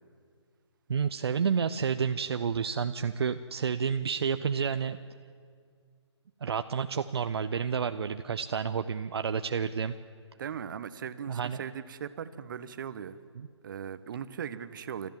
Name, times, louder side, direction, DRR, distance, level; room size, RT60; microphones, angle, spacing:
voice 1, 0.9-5.0 6.4-9.9 11.3-11.6 13.4-13.5, right 6 dB, 60° right, 9 dB, 0.7 m, -30 dB
voice 2, 10.4-13.2 13.6-15.1, right 8 dB, 45° right, 13 dB, 1.0 m, -38 dB
30.0 x 14.0 x 7.4 m, 2.1 s
figure-of-eight pair, 145°, 15 cm